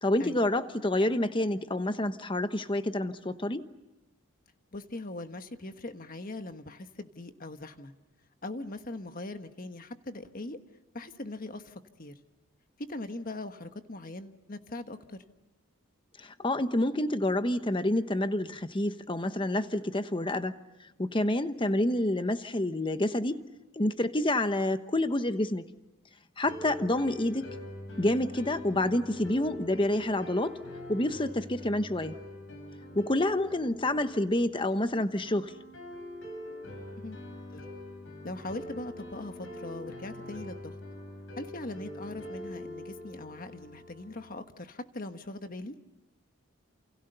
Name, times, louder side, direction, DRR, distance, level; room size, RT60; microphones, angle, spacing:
voice 1, 0.0-3.7 16.2-20.6 21.0-23.5 23.8-25.7 26.4-27.4 28.0-30.6 30.9-32.2 32.9-35.5, left 1 dB, 25° left, 10 dB, 1.0 m, -28 dB
voice 2, 4.7-7.9 8.4-10.6 10.9-12.1 12.9-15.2 37.0-37.2 37.5-37.6 38.2-40.8 41.4-45.7, left 2 dB, 40° left, 8 dB, 1.4 m, -41 dB
sound 1, 26.4-44.4, left 1 dB, 65° left, 7.0 m, -44 dB
29.0 x 28.5 x 6.8 m, 0.96 s
head